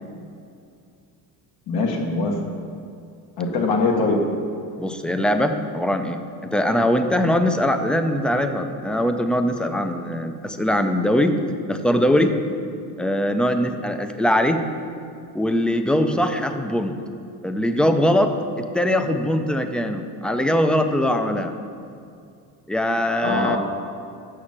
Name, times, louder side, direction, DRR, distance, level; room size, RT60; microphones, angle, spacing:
voice 1, 1.7-2.4 3.4-4.2 23.2-23.6, left 3 dB, 70° left, 0 dB, 1.3 m, -22 dB
voice 2, 4.8-11.4 11.7-12.3 13.0-14.6 15.3-17.0 17.4-21.5 22.7-23.6, equal, 5° left, 7 dB, 0.4 m, -21 dB
6.5 x 6.3 x 7.2 m, 2.4 s
cardioid pair, 125°, 38 cm